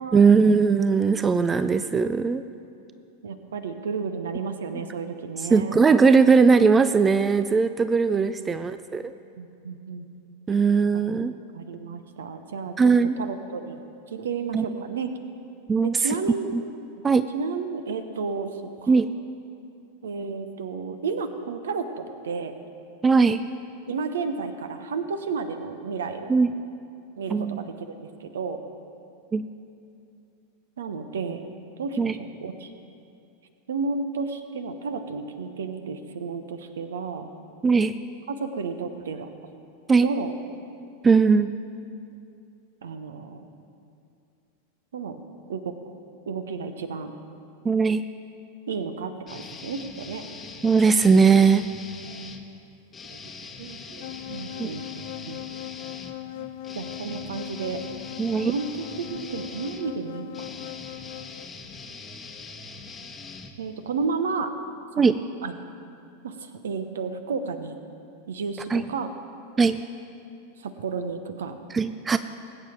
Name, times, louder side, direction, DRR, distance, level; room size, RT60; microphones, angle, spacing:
voice 1, 0.1-2.4 5.4-9.1 10.5-11.3 12.8-13.2 14.5-14.6 15.7-16.1 16.5-16.6 17.0-17.3 18.9-19.1 23.0-23.4 26.3-26.5 27.3-27.6 29.3-29.5 32.0-32.2 37.6-37.9 39.9-40.1 41.0-41.5 47.6-48.0 50.6-51.7 54.6-54.7 58.2-58.5 65.0-65.2 68.7-68.8 69.6-69.8 71.7-72.2, right 5 dB, 15° right, 12 dB, 0.4 m, -19 dB
voice 2, 3.2-5.7 8.2-8.6 9.4-10.1 10.9-11.0 11.5-12.8 13.2-13.8 14.1-15.1 15.8-16.5 17.3-18.9 20.0-22.5 23.9-26.3 27.2-28.6 30.8-31.5 31.8-32.7 33.7-37.3 38.3-39.3 40.0-40.3 42.8-43.5 44.9-45.2 45.5-45.7 46.3-47.1 48.7-50.2 53.1-55.4 56.3-56.5 56.7-57.8 58.4-60.5 63.6-64.5 65.4-65.5 66.2-67.7 68.3-69.1 70.6-71.6, right 5 dB, 65° right, 9 dB, 0.9 m, -32 dB
sound 1, 49.3-52.4 52.9-64.1, left 4 dB, 20° left, 1.1 m, -42 dB
sound 2, 54.0-61.5, left 14 dB, 50° left, 0.4 m, -39 dB
20.0 x 8.8 x 4.5 m, 2.6 s
figure-of-eight pair, 90°, 0 cm